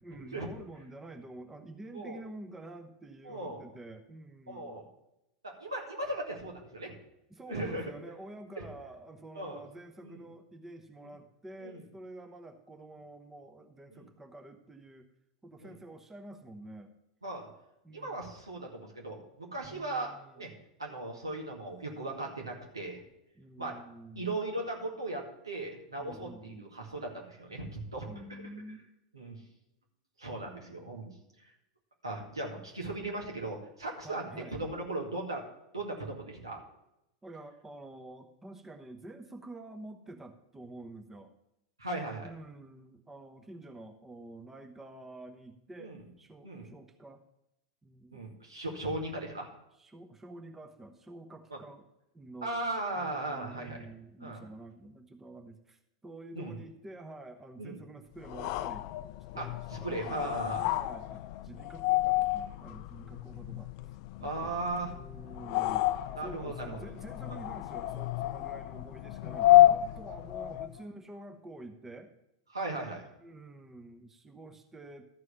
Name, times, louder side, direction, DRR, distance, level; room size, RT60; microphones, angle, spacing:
voice 1, 0.0-4.8 7.3-15.1 15.4-16.9 17.8-18.2 19.6-20.5 23.4-24.4 26.0-26.7 28.1-28.8 34.0-34.6 37.2-41.3 42.2-47.2 47.8-48.2 49.8-51.9 52.1-52.6 52.9-58.9 59.3-59.5 59.8-63.7 64.2-64.5 64.8-65.9 66.2-72.1 73.2-75.0, right 2 dB, 15° right, 5 dB, 1.0 m, -48 dB
voice 2, 3.2-3.6 4.5-4.9 5.4-6.9 7.5-7.9 8.6-8.7 9.3-9.6 10.0-10.2 11.6-11.8 13.9-14.1 15.6-15.8 17.2-17.5 17.9-20.5 20.8-23.0 23.6-23.8 24.2-28.4 29.1-29.4 30.2-31.1 31.4-31.5 32.0-35.4 35.7-36.6 41.8-42.3 45.8-46.1 46.4-46.7 48.1-49.5 51.5-51.6 52.4-53.9 54.2-54.5 56.4-56.6 57.6-57.8 59.4-60.7 64.2-64.9 66.2-66.8 67.3-67.4 72.5-73.1, right 2 dB, 85° right, 0 dB, 2.2 m, -37 dB
sound 1, 58.2-70.8, left 15 dB, 50° left, 0.5 m, -29 dB
13.0 x 4.8 x 7.1 m, 0.87 s
figure-of-eight pair, 90°, 2 cm